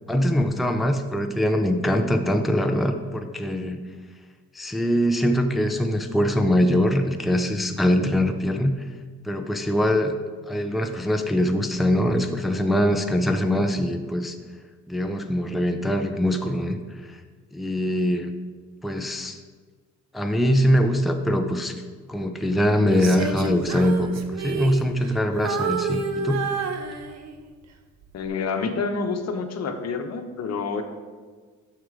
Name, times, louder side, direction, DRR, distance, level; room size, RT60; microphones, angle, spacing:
voice 1, 0.1-3.8 4.5-8.8 9.2-10.1 10.5-14.4 14.9-16.8 17.0-17.1 17.5-18.3 18.8-19.4 20.1-21.8 22.1-26.4, equal, ahead, 5 dB, 0.6 m, -23 dB
Female singing, 22.9-25.2 25.4-27.5 28.0-28.3, right 5 dB, 60° right, 0.9 m, -29 dB
voice 2, 28.1-30.8, left 4 dB, 60° left, 6 dB, 1.0 m, -28 dB
9.5 x 6.6 x 3.7 m, 1.5 s
cardioid pair, 90°, 30 cm